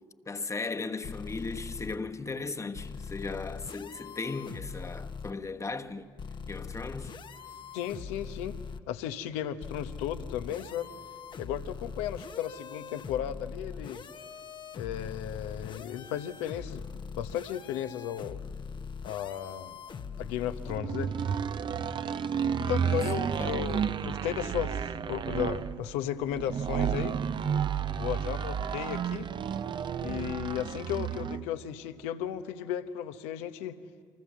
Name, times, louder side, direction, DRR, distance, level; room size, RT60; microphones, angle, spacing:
voice 1, 0.0-6.1 6.5-7.2 22.8-23.6, left 3 dB, 30° left, 1.3 m, -37 dB
sound 1, 1.0-1.9 2.7-5.3 6.2-8.8 9.6-20.8, left 5 dB, 45° left, 1.1 m, -42 dB
voice 2, 7.7-8.6 8.9-10.9 11.4-14.0 14.7-16.9 17.2-18.4 19.0-19.8 20.2-21.1 22.6-27.2 28.0-29.3 30.0-33.8, left 10 dB, 75° left, 1.0 m, -35 dB
sound 2, 20.7-31.5, right 7 dB, 45° right, 0.8 m, -31 dB
26.5 x 24.5 x 7.3 m
hypercardioid pair, 45°, 11 cm